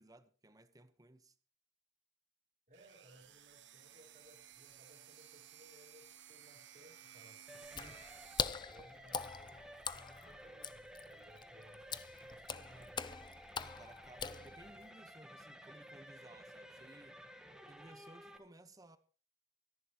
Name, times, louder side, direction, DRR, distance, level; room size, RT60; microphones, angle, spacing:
voice 1, 0.0-1.3 7.6-8.0 13.6-17.2 17.7-19.0, right 1 dB, 20° right, 1.1 m, -59 dB
voice 2, 2.7-8.1 8.7-13.2, right 1 dB, 45° right, 4.1 m, -62 dB
sound 1, 2.7-8.5, right 10 dB, 75° right, 1.1 m, -57 dB
sound 2, 7.5-18.4, equal, 5° right, 1.5 m, -54 dB
Water / Splash splatter, 7.6-14.9, left 6 dB, 25° left, 0.6 m, -43 dB
24.5 x 11.0 x 3.0 m
head